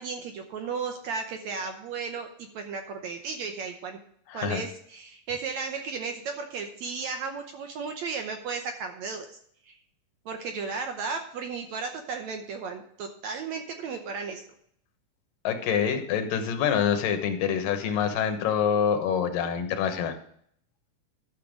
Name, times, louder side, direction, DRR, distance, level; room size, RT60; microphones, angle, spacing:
voice 1, 0.0-4.0 4.3-9.3 9.7-9.8 10.3-14.4, right 5 dB, 70° right, 5 dB, 1.8 m, -34 dB
voice 2, 4.3-4.6 15.4-20.2, left 8 dB, 75° left, 7 dB, 2.8 m, -26 dB
12.5 x 6.7 x 5.1 m, 0.65 s
omnidirectional pair, 4.0 m